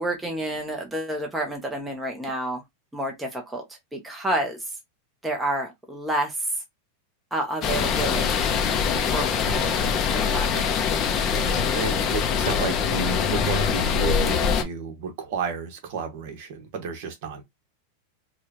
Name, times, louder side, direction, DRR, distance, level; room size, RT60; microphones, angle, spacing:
voice 1, 0.0-2.6 2.9-3.6 3.9-4.6 5.2-6.5 7.3-8.5 9.0-9.8 10.1-10.7, right 1 dB, 5° right, 0.8 m, -29 dB
sound 1, 7.6-14.6, left 6 dB, 25° left, 0.6 m, -23 dB
voice 2, 11.3-17.4, right 5 dB, 55° right, 1.3 m, -32 dB
4.7 x 2.3 x 2.9 m
supercardioid pair, 160°, 0 cm